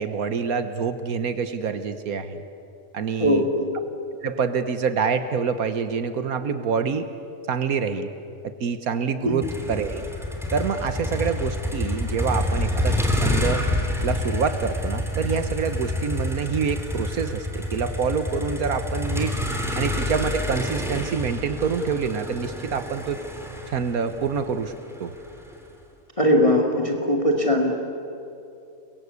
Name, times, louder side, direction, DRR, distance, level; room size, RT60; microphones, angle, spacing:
voice 1, 0.0-2.4 2.9-3.4 4.2-7.1 7.5-8.1 8.4-10.0 10.5-13.6 14.0-19.3 19.7-23.2 23.7-24.7 25.0-25.1, right 6 dB, 85° right, 10 dB, 1.6 m, -26 dB
voice 2, 3.2-3.7 9.2-9.4 26.2-27.7, left 1 dB, 20° left, 1 dB, 2.2 m, -20 dB
Motor vehicle (road), 9.4-25.5, left 1 dB, ahead, 3.1 m, -28 dB
29.5 x 22.5 x 8.3 m, 2.7 s
omnidirectional pair, 1.5 m